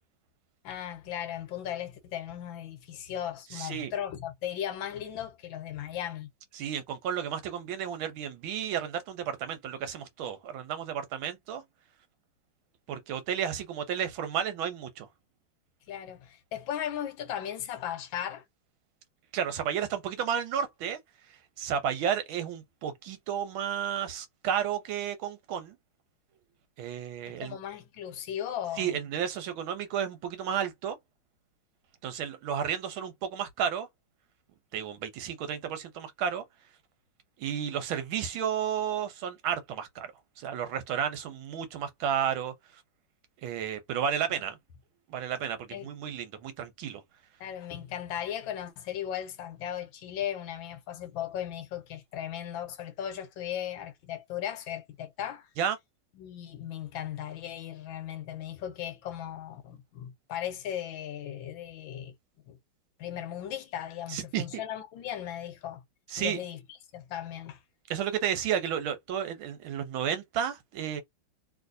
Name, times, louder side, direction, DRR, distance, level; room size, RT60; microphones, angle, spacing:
voice 1, 0.6-6.3 15.9-18.4 27.4-29.0 44.3-44.4 45.7-45.9 47.4-55.5 56.2-62.1 62.5-62.6 63.0-65.8 66.2-66.6 66.9-67.6, left 10 dB, 80° left, 1.5 m, -37 dB
voice 2, 3.5-3.9 6.5-11.6 12.9-15.1 19.3-21.0 21.6-25.8 26.8-27.6 28.8-31.0 32.0-33.9 34.7-36.4 37.4-40.1 40.4-42.5 43.4-44.6 45.1-47.0 55.6-55.8 64.1-64.6 66.1-66.4 67.9-71.0, right 8 dB, 85° right, 1.7 m, -32 dB
3.1 x 3.0 x 2.6 m
omnidirectional pair, 2.2 m